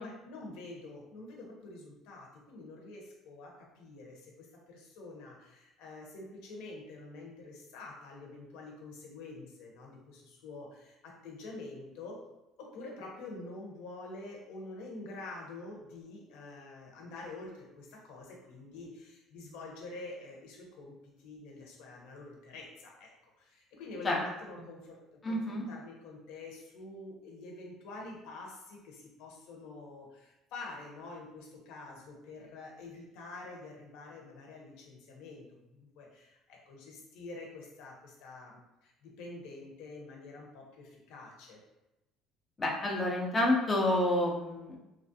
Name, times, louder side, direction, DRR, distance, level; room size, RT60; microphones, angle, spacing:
voice 1, 0.0-12.2 12.6-25.0 25.2-41.6, left 2 dB, 85° left, -1 dB, 0.8 m, -47 dB
voice 2, 25.2-25.6 42.6-44.8, left 1 dB, 20° left, -3 dB, 0.4 m, -29 dB
3.1 x 2.3 x 2.7 m, 0.95 s
cardioid pair, 165°, 0 cm